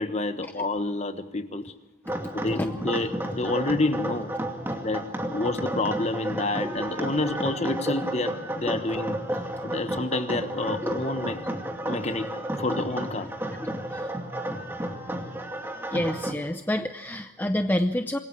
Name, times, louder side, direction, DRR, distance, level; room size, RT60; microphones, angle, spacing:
voice 1, 0.0-1.7 2.3-4.3 4.8-9.2 9.6-11.6 11.9-13.3, left 2 dB, 30° left, 1.4 m, -29 dB
voice 2, 2.1-2.7 4.6-4.8 6.6-6.8 10.8-10.9 13.6-14.1 15.9-18.2, left 1 dB, 10° left, 0.6 m, -29 dB
sound 1, 2.1-16.3, right 1 dB, 10° right, 2.4 m, -32 dB
27.0 x 21.5 x 4.8 m
head